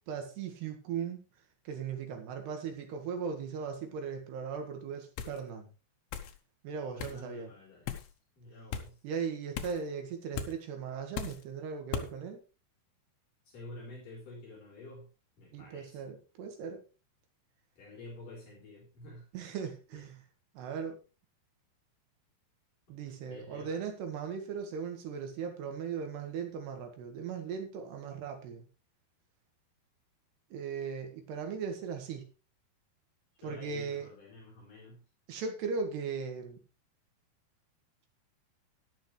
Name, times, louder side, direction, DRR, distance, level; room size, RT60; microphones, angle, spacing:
voice 1, 0.1-1.2 1.7-5.7 6.6-7.5 9.0-12.4 15.5-16.8 19.3-20.2 20.6-21.0 22.9-28.7 30.5-32.3 33.4-34.1 35.3-36.6, right 6 dB, 85° right, 5 dB, 3.9 m, -38 dB
sound 1, 5.2-5.4 6.1-6.3 7.0-7.2 7.9-8.1 8.7-8.9 9.5-9.8 10.3-10.5 11.1-11.4 11.9-12.1, left 8 dB, 80° left, 3.0 m, -37 dB
voice 2, 6.9-8.0 8.4-9.0 13.5-15.1 15.4-16.0 17.8-19.3 19.9-20.0 23.3-23.8 33.4-35.0, left 2 dB, 55° left, -4 dB, 5.6 m, -49 dB
12.5 x 11.5 x 3.2 m, 0.33 s
omnidirectional pair, 4.6 m